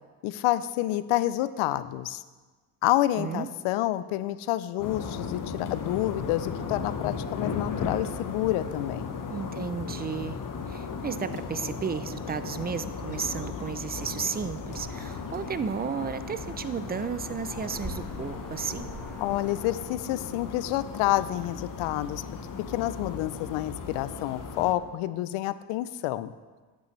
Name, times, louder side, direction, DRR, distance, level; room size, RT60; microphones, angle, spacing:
voice 1, 0.2-2.2 2.8-9.2 19.2-22.2 22.7-26.3, left 15 dB, 75° left, 15 dB, 0.6 m, -28 dB
voice 2, 3.2-3.5 9.3-10.4 10.7-18.9, right 6 dB, 20° right, 12 dB, 0.4 m, -33 dB
sound 1, 4.8-24.7, left 5 dB, 40° left, 1.1 m, -36 dB
sound 2, 14.6-19.8, right 1 dB, ahead, 1.3 m, -45 dB
12.5 x 8.1 x 3.2 m, 1.3 s
supercardioid pair, 80°, 49 cm